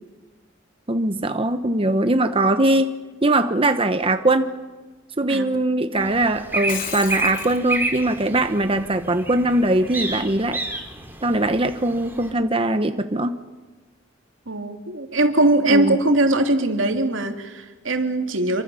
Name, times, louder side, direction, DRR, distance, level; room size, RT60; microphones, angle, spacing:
voice 1, 0.9-2.9 3.2-4.6 5.2-10.6 11.2-13.4 15.7-16.0, right 2 dB, 30° right, 8 dB, 1.0 m, -21 dB
sound 1, 6.0-12.3, right 2 dB, 10° right, 3.7 m, -30 dB
Shatter, 6.5-7.6, left 7 dB, 45° left, 3.0 m, -33 dB
voice 2, 14.5-18.6, right 2 dB, 80° right, 5 dB, 2.8 m, -21 dB
27.5 x 24.5 x 7.1 m, 1.3 s
head